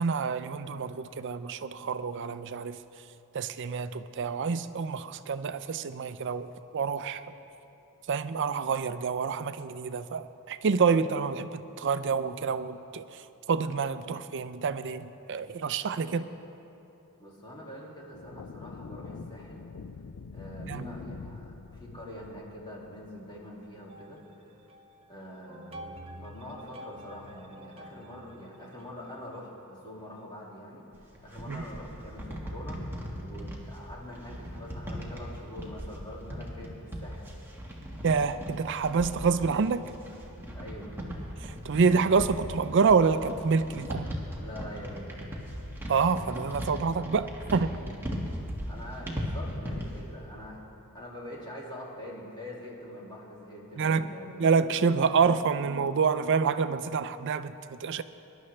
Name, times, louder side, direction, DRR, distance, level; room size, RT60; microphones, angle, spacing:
voice 1, 0.0-2.8 3.3-7.2 8.1-13.2 13.5-16.3 20.7-20.9 31.5-31.6 38.0-39.8 41.4-44.1 45.9-47.7 53.8-54.0 54.4-58.0, right 5 dB, 55° right, 12 dB, 0.4 m, -27 dB
voice 2, 17.2-19.6 20.3-21.5 21.8-24.2 25.1-32.8 33.1-37.2 40.5-40.9 44.4-45.1 48.7-50.6 50.9-54.6, left 1 dB, 20° left, -4 dB, 2.2 m, -44 dB
sound 1, 18.1-23.8, left 4 dB, 75° left, 0.5 m, -45 dB
sound 2, 23.9-25.1 25.5-29.4, equal, 25° right, 0.7 m, -48 dB
sound 3, 30.9-50.0, equal, 10° right, 1.5 m, -38 dB
21.5 x 11.0 x 3.3 m, 2.9 s
head